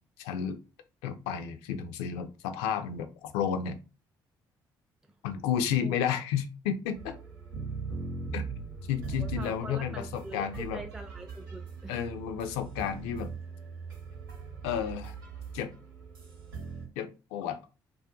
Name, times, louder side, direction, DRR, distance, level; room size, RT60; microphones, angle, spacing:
voice 1, 0.2-0.6 1.0-3.8 5.2-7.2 8.3-8.4 8.9-10.8 11.9-13.3 14.6-15.1 15.5-15.7 17.0-17.6, left 8 dB, 65° left, 9 dB, 0.4 m, -32 dB
sound 1, 6.9-16.9, right 5 dB, 85° right, 0.6 m, -40 dB
voice 2, 9.2-12.1, right 2 dB, 5° right, 4 dB, 0.4 m, -43 dB
2.4 x 2.3 x 2.4 m, 0.32 s
figure-of-eight pair, 45°, 11 cm